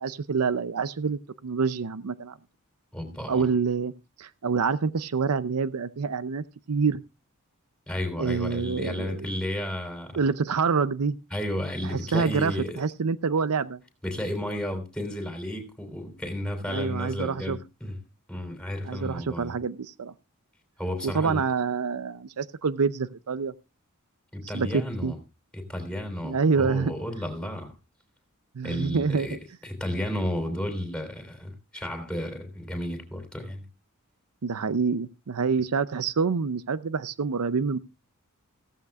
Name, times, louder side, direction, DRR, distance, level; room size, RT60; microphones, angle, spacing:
voice 1, 0.0-2.4 3.3-3.9 4.2-7.0 8.2-9.3 10.1-11.2 12.1-13.8 16.7-17.6 18.8-20.1 21.0-23.5 24.4-25.1 26.2-26.9 28.5-29.4 34.4-37.8, right 5 dB, 80° right, 0.6 m, -27 dB
voice 2, 2.9-3.5 7.9-10.2 11.3-12.8 14.0-18.0 18.3-19.6 20.8-21.4 24.3-25.2 25.5-27.7 28.6-29.4 29.6-33.7, left 1 dB, 5° left, 3.4 m, -32 dB
16.0 x 14.5 x 2.3 m
head